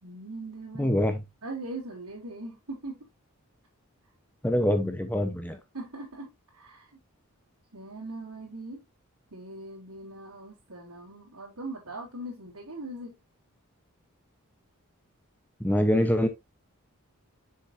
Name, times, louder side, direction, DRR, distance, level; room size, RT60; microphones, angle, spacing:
voice 1, 0.0-1.0 1.4-3.0 5.7-6.9 7.7-8.8 9.3-13.2, right 2 dB, 80° right, 3.7 m, -40 dB
voice 2, 0.8-1.2 4.4-5.6 15.6-16.3, left 1 dB, 5° left, 0.9 m, -24 dB
7.2 x 6.7 x 2.7 m
head